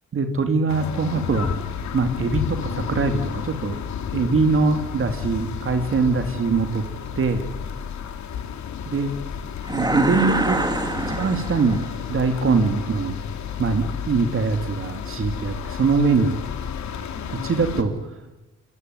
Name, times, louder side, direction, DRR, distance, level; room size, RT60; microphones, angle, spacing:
voice 1, 0.1-1.6 1.9-3.8 4.1-6.8 7.2-7.4 8.9-9.1 9.7-10.6 11.1-11.8 12.1-13.2 13.6-16.4 17.3-17.9, right 4 dB, 45° right, 6 dB, 2.8 m, -22 dB
sound 1, 0.7-17.8, left 8 dB, 70° left, 2.9 m, -32 dB
sound 2, 9.6-12.0, right 1 dB, 15° right, 2.7 m, -25 dB
26.0 x 24.0 x 9.6 m, 1.0 s
cardioid pair, 90°, 30 cm